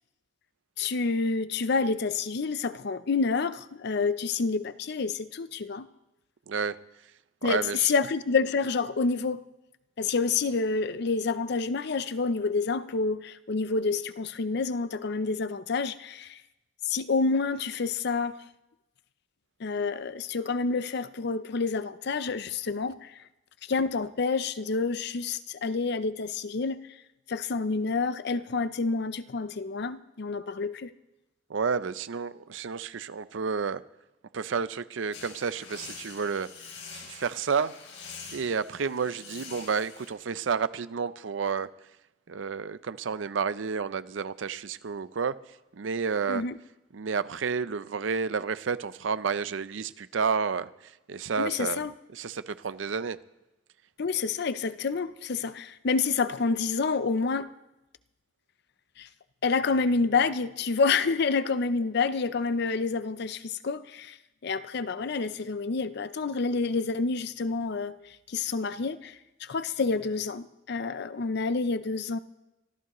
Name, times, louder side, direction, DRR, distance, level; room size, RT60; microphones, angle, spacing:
voice 1, 0.8-5.9 7.4-9.4 10.0-16.4 16.9-18.4 19.6-23.1 23.7-26.8 27.3-30.9 46.3-46.6 51.4-51.9 54.0-57.5 59.0-59.1 59.4-64.2 64.4-68.0 68.3-69.2 69.4-72.2, left 4 dB, 60° left, 0.6 m, -28 dB
voice 2, 6.5-6.8 7.4-8.0 31.5-33.8 34.3-37.7 38.3-41.7 42.3-46.5 46.9-53.2, right 5 dB, 90° right, 0.5 m, -31 dB
sound 1, 35.1-40.1, left 5 dB, 75° left, 4.0 m, -45 dB
24.5 x 14.0 x 3.0 m
head